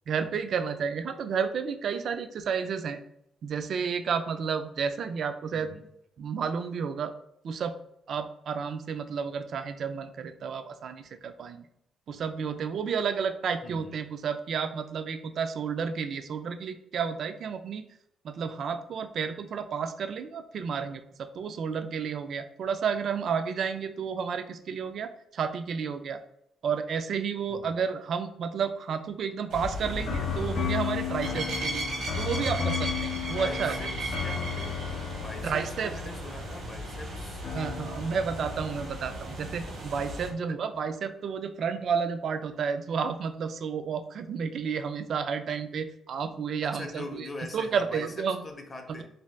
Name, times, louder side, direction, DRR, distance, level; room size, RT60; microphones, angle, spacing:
voice 1, 0.1-3.0 3.4-5.7 6.2-7.1 7.4-7.8 8.1-11.7 12.1-17.9 18.2-26.2 26.6-31.9 32.2-33.8 35.4-35.9 37.5-47.3 47.5-48.4 48.9-49.0, right 6 dB, 60° right, 9 dB, 0.3 m, -31 dB
voice 2, 5.5-5.9 13.6-13.9 27.5-27.8 31.3-31.6 33.4-37.4 40.3-40.4 46.6-49.0, left 2 dB, 30° left, 4 dB, 0.6 m, -43 dB
sound 1, 29.5-40.3, right 1 dB, 80° right, 1.1 m, -36 dB
sound 2, 29.8-39.0, left 8 dB, 80° left, 0.4 m, -35 dB
2.6 x 2.2 x 3.2 m, 0.76 s
cardioid pair, 90°, 0 cm